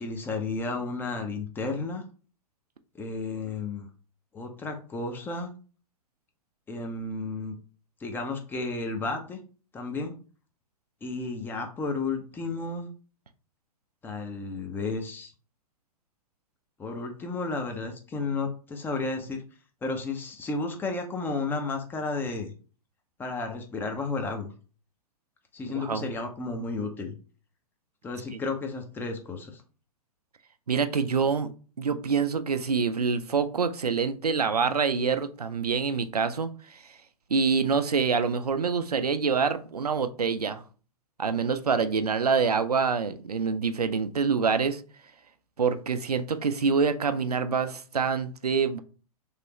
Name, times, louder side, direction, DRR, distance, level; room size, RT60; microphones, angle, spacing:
voice 1, 0.0-2.0 3.0-3.9 4.3-5.5 6.7-7.6 8.0-9.4 9.7-10.1 11.0-12.9 14.0-15.3 16.8-19.4 19.8-22.5 23.2-24.5 25.5-27.1 28.0-29.6, left 3 dB, 10° left, 0.5 m, -32 dB
voice 2, 25.7-26.1 30.7-31.5 31.8-36.8 37.3-40.6 41.2-44.8 45.6-48.8, right 5 dB, 85° right, 0.4 m, -26 dB
3.2 x 2.9 x 3.0 m
figure-of-eight pair, 105°, 19 cm